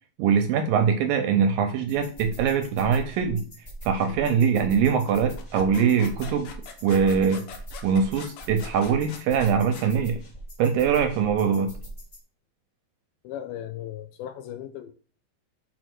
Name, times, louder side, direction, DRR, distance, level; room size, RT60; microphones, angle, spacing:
voice 1, 0.2-3.4 3.9-6.5 6.8-7.4 7.8-10.2 10.6-11.7, right 6 dB, 75° right, 7 dB, 2.2 m, -22 dB
sound 1, 1.9-12.2, right 1 dB, 35° left, 1.2 m, -41 dB
sound 2, 5.1-9.9, left 6 dB, 65° left, 2.4 m, -43 dB
voice 2, 13.2-14.9, left 11 dB, 80° left, 10 dB, 2.3 m, -37 dB
6.3 x 4.8 x 6.0 m, 0.40 s
omnidirectional pair, 4.6 m